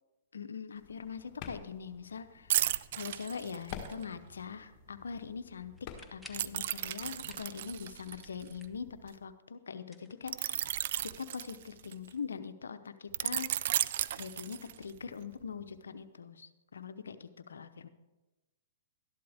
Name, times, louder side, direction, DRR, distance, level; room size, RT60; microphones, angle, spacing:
voice 1, 0.3-2.6 2.9-10.7 11.0-13.5 14.1-17.9, left 6 dB, 80° left, 10 dB, 0.8 m, -42 dB
sound 1, 0.8-6.7, left 7 dB, 35° left, 1.7 m, -50 dB
sound 2, 2.5-4.0 6.3-9.1 10.3-12.1 13.1-15.0 15.4-15.6, right 12 dB, 60° right, 0.4 m, -34 dB
sound 3, 5.8-6.5 7.0-7.6 7.9-8.9 9.8-10.7, equal, 5° right, 1.0 m, -55 dB
12.5 x 11.5 x 3.5 m, 1.1 s
hypercardioid pair, 120°, 0 cm